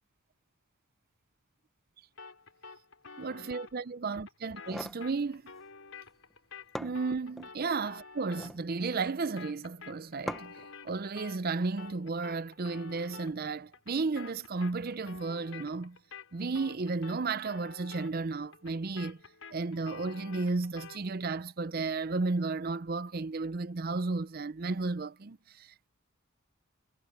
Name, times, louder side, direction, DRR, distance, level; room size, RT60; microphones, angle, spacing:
sound 1, 2.2-11.5 11.8-21.1, left 4 dB, 70° left, 5.1 m, -50 dB
voice 1, 3.2-5.5 6.8-10.5 10.8-16.0 16.3-19.2 19.5-25.9, right 3 dB, 45° right, 0.5 m, -33 dB
sound 2, 4.5-5.0 6.3-6.4 6.8-7.5 8.2-8.7 10.3-10.7, equal, ahead, 0.7 m, -41 dB
head